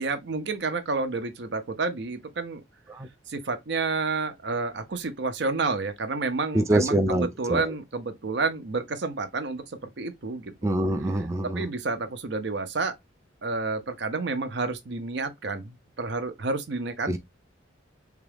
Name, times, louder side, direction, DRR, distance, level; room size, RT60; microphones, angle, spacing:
voice 1, 0.0-2.6 3.3-10.5 11.6-12.9 13.4-17.2, right 3 dB, 60° right, 0.6 m, -30 dB
voice 2, 6.5-7.7 10.6-11.7 17.1-17.2, right 1 dB, 15° right, 0.4 m, -25 dB
3.6 x 2.3 x 3.3 m
head